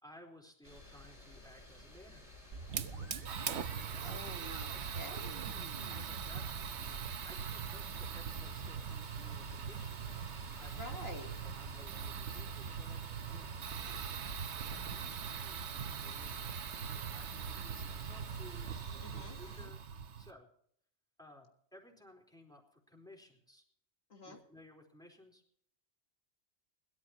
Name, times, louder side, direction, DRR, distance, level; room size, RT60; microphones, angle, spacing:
voice 1, 0.0-2.4 3.6-5.0 5.9-10.1 10.6-11.0 11.4-13.5 13.8-14.0 14.7-19.8 20.2-20.5 21.2-23.6 24.2-25.4, left 1 dB, 5° left, 0 dB, 4.1 m, -58 dB
sound 1, 0.6-19.7, left 1 dB, 30° left, 3.7 m, -54 dB
sound 2, 2.5-12.1, right 4 dB, 55° right, 1.5 m, -53 dB
Fire, 2.7-20.3, right 7 dB, 90° right, 1.2 m, -41 dB
voice 2, 4.0-5.5 10.8-11.3 19.0-19.7 24.1-24.4, left 2 dB, 65° left, 2 dB, 2.0 m, -48 dB
22.0 x 13.0 x 3.0 m, 0.66 s
omnidirectional pair, 1.1 m